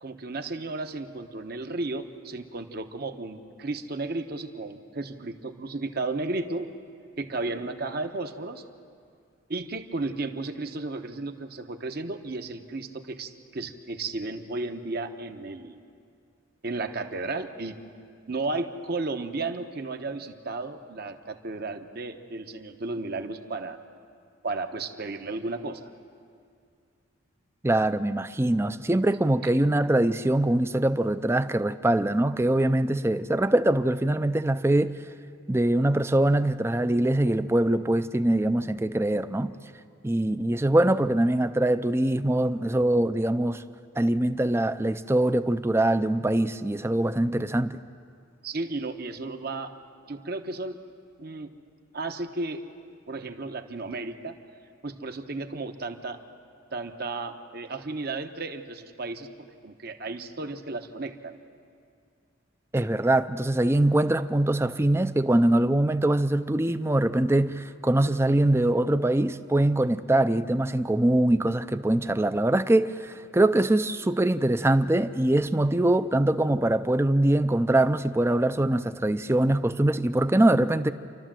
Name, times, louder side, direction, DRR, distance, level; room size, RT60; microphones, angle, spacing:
voice 1, 0.0-6.7 7.2-8.6 9.5-15.8 16.6-17.8 18.3-23.8 24.4-25.9 48.4-49.7 50.1-50.8 51.2-51.5 51.9-52.6 53.1-54.4 54.8-56.2 56.7-61.4, right 3 dB, 50° right, 7 dB, 1.0 m, -34 dB
voice 2, 27.6-34.9 35.5-39.5 40.0-43.6 44.0-47.8 62.7-80.9, right 1 dB, 10° right, 12 dB, 0.4 m, -23 dB
29.0 x 12.5 x 7.5 m, 2.3 s
head